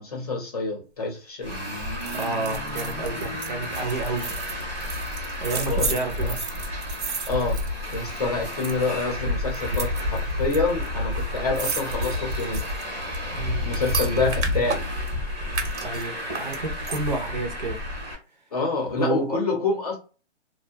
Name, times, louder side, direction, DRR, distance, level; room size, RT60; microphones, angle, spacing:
voice 1, 0.0-1.5 5.5-6.3 7.3-7.6 7.9-12.6 13.6-14.9 18.5-20.0, left 3 dB, 35° left, 0.7 m, -27 dB
Traffic noise roadway noise, 1.4-18.1, left 1 dB, 10° right, 0.7 m, -30 dB
sound 1, 2.0-8.2 8.5-9.0 9.5-10.6 10.8-10.9 11.1-15.1 15.5-17.3 17.7-17.8, right 5 dB, 80° right, 0.9 m, -34 dB
voice 2, 2.1-4.4 5.4-6.5 13.3-13.7 15.8-17.8 18.8-19.4, right 3 dB, 40° right, 0.6 m, -30 dB
2.6 x 2.2 x 2.6 m
hypercardioid pair, 165°, 35 cm